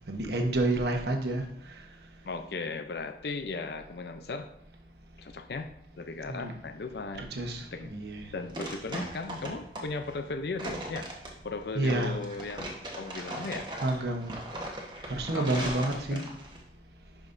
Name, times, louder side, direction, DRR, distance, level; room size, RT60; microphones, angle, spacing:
voice 1, 0.1-1.8 6.3-6.5 7.2-8.3 11.7-12.2 13.8-14.4 15.1-16.2, right 2 dB, 65° right, 3 dB, 1.0 m, -30 dB
voice 2, 2.2-4.5 5.2-5.7 6.0-7.3 7.7-7.9 8.3-11.1 11.4-13.7 15.3-16.4, left 3 dB, 65° left, 7 dB, 0.5 m, -37 dB
sound 1, 8.0-16.6, right 1 dB, 25° right, 1.1 m, -39 dB
11.0 x 5.1 x 2.6 m, 0.74 s
head